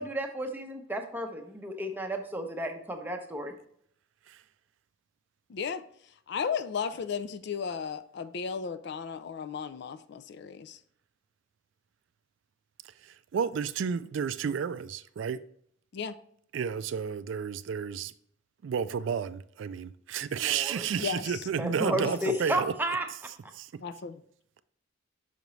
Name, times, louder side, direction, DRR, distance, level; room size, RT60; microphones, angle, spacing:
voice 1, 0.0-3.5 20.4-20.9 21.6-23.1, right 1 dB, 10° right, 0.7 m, -32 dB
voice 2, 5.5-5.8 6.3-10.8 15.9-16.1 20.9-21.4 22.0-22.2 23.8-24.2, left 6 dB, 55° left, 0.4 m, -35 dB
voice 3, 12.8-15.4 16.5-18.1 18.6-22.7 23.5-23.8, right 7 dB, 65° right, 0.3 m, -32 dB
5.8 x 5.2 x 3.1 m
head